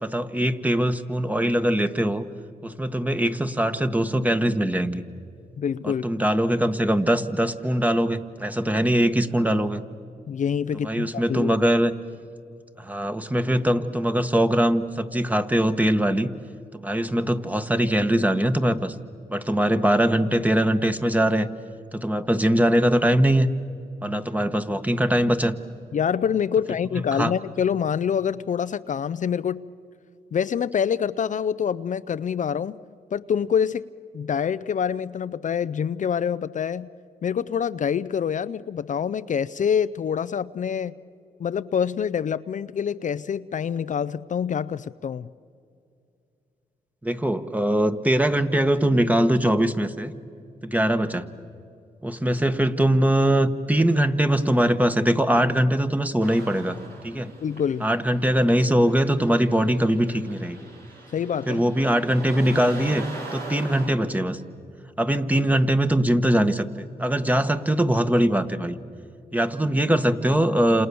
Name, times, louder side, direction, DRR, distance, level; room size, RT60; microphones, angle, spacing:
voice 1, 0.0-2.2 2.6-5.0 5.8-9.8 10.8-11.9 12.8-16.3 16.7-18.9 19.3-21.5 21.9-23.5 24.0-25.5 27.2-27.3 47.0-50.1 50.6-51.3 52.0-56.8 57.0-57.3 57.8-60.6 61.5-63.0 63.3-64.4 65.0-66.7 67.0-68.8 69.3-70.9, right 1 dB, 10° right, 9 dB, 1.4 m, -22 dB
voice 2, 5.6-6.0 10.3-11.6 25.9-29.6 30.3-32.8 33.1-33.9 34.1-36.9 37.2-40.9 41.4-45.3 57.4-57.9 61.1-61.6, left 7 dB, 50° left, 13 dB, 0.6 m, -26 dB
sound 1, 56.2-63.9, right 2 dB, 80° right, 5.4 m, -41 dB
29.5 x 28.0 x 7.0 m, 2.5 s
cardioid pair, 75°, 16 cm